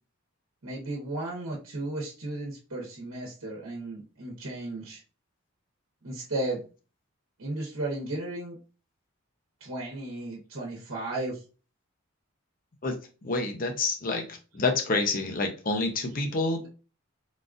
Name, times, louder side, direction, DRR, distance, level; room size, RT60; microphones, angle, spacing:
voice 1, 0.6-5.0 6.0-6.6 7.4-8.6 9.6-11.4, right 2 dB, 85° right, 1.0 m, -34 dB
voice 2, 13.2-14.2 14.5-16.7, left 3 dB, 40° left, 0.6 m, -27 dB
3.8 x 2.4 x 2.4 m
head